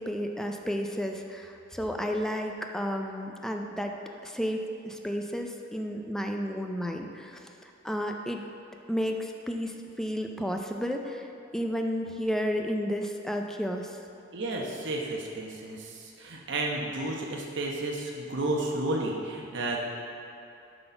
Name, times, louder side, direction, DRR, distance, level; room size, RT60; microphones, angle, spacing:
voice 1, 0.0-4.0 4.2-8.4 8.9-11.3 11.5-14.0, equal, 5° left, 3 dB, 0.4 m, -32 dB
voice 2, 14.3-19.8, right 2 dB, 65° right, -1 dB, 1.0 m, -32 dB
7.7 x 4.1 x 5.7 m, 2.8 s
head